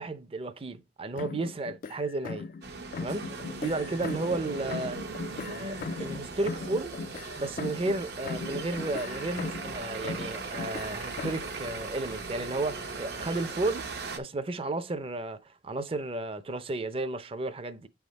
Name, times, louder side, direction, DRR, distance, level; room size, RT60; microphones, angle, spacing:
voice 1, 0.0-2.5 3.0-3.2 3.6-5.0 5.5-7.0 7.4-17.9, right 2 dB, 35° right, 0.6 m, -33 dB
sound 1, 1.2-2.7 2.9-4.4 4.7-8.0 8.3-9.8 10.0-11.5, left 4 dB, 50° left, 0.3 m, -39 dB
sound 2, 2.6-14.2, right 3 dB, 65° right, 0.8 m, -39 dB
8.1 x 3.6 x 4.1 m
head